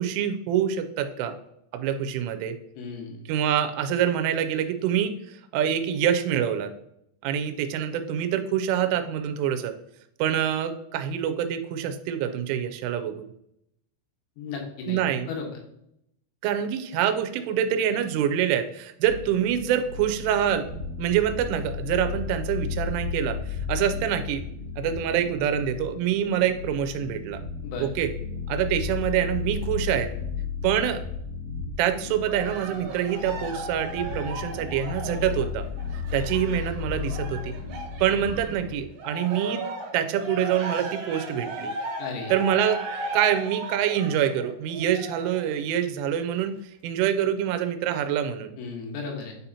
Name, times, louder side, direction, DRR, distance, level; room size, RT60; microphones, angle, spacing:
voice 1, 0.0-1.4 1.7-2.6 3.3-6.7 7.2-9.7 10.2-13.3 14.9-15.3 16.4-20.7 21.0-23.4 23.7-24.4 24.8-27.4 27.8-28.1 28.5-30.1 30.6-31.0 31.8-35.7 36.1-37.5 38.0-39.7 39.9-41.7 42.3-42.8 43.1-48.5, right 9 dB, 85° right, 8 dB, 3.0 m, -26 dB
voice 2, 2.8-3.2 14.4-15.0 15.3-15.5 27.6-27.9 42.0-42.3 48.6-49.4, left 5 dB, 75° left, 1 dB, 3.8 m, -34 dB
Dead Pulse, 19.0-38.8, left 6 dB, 40° left, 1.2 m, -34 dB
Cheering, 32.3-38.6 39.0-45.5 46.2-46.3, right 2 dB, 60° right, 2.5 m, -36 dB
9.1 x 4.1 x 2.8 m, 0.77 s
omnidirectional pair, 5.9 m